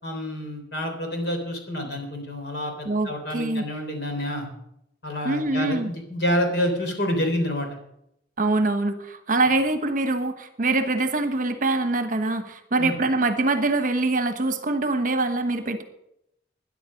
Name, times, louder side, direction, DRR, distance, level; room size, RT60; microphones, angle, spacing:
voice 1, 0.0-4.5 5.0-7.7 12.8-13.0, equal, 55° left, 4 dB, 3.5 m, -28 dB
voice 2, 2.8-3.6 5.2-5.9 8.4-15.8, right 2 dB, 45° right, 8 dB, 1.1 m, -24 dB
13.0 x 10.5 x 6.5 m, 0.78 s
head